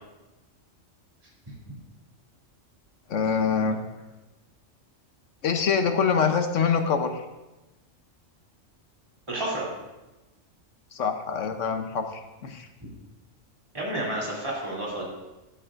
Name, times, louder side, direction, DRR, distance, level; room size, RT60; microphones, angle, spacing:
voice 1, 3.1-3.8 5.4-7.2 10.9-12.7, left 6 dB, 75° left, 6 dB, 1.2 m, -25 dB
voice 2, 9.3-9.7 13.7-15.0, right 1 dB, 25° right, -6 dB, 3.1 m, -30 dB
13.5 x 13.0 x 2.6 m, 1.1 s
omnidirectional pair, 1.3 m